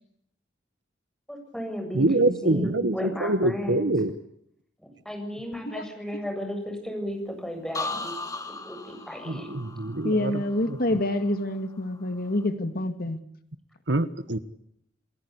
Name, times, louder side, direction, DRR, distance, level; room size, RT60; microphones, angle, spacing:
voice 1, 1.3-3.9 4.8-9.5, equal, 5° left, 4 dB, 7.6 m, -35 dB
voice 2, 2.0-4.1 9.3-10.1 13.9-14.4, right 2 dB, 75° right, 13 dB, 1.6 m, -24 dB
sound 1, 7.7-11.6 11.9-12.4, left 3 dB, 20° left, 3.9 m, -38 dB
voice 3, 10.0-13.2, left 1 dB, 55° left, 9 dB, 2.2 m, -27 dB
30.0 x 19.5 x 8.3 m, 0.74 s
head